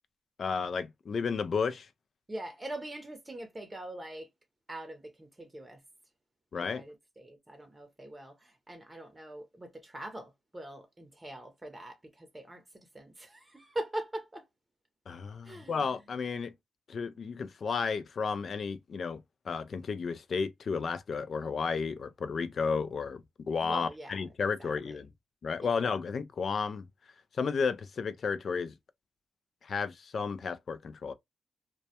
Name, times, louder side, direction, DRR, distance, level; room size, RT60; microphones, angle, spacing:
voice 1, 0.4-1.9 6.5-6.8 15.1-16.5 16.9-19.2 19.5-23.2 23.5-25.1 25.4-26.9 27.4-28.7 29.6-31.1, left 5 dB, 60° left, 0.3 m, -32 dB
voice 2, 2.3-4.3 4.7-5.8 6.5-12.6 12.9-14.4 15.4-15.8 23.6-24.2 24.6-25.0 25.6-25.8, right 1 dB, 25° right, 0.7 m, -42 dB
2.1 x 2.1 x 2.7 m
supercardioid pair, 55°, 0 cm